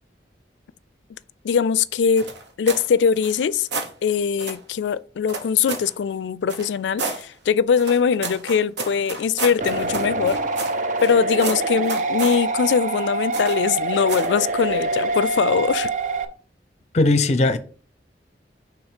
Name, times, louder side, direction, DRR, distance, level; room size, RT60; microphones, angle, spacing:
voice 1, 1.4-2.3 2.6-3.7 4.0-10.4 11.0-15.9, left 6 dB, 85° left, 0.3 m, -21 dB
sound 1, 2.2-2.9 3.2-3.9 4.4-4.6 5.3-5.9 6.5-7.2 7.8-11.1 11.4-12.4 13.3-13.7 14.1-14.4, right 3 dB, 75° right, 1.1 m, -31 dB
sound 2, 9.6-16.2, right 3 dB, 45° right, 0.6 m, -25 dB
voice 2, 16.9-17.6, left 2 dB, 40° left, 0.6 m, -18 dB
6.2 x 3.5 x 4.9 m
head